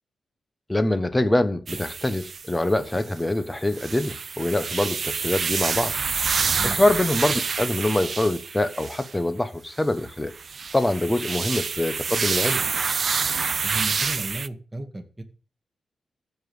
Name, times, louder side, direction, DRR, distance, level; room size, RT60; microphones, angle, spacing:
voice 1, 0.7-5.9 6.6-10.3 10.7-12.6, left 1 dB, 10° left, 1.1 m, -24 dB
sound 1, 1.7-3.2 3.6-9.1 10.1-14.5, right 5 dB, 40° right, 0.5 m, -27 dB
voice 2, 13.6-15.2, right 1 dB, 10° right, 2.0 m, -34 dB
14.5 x 5.3 x 7.9 m
wide cardioid pair, 155°, 0 cm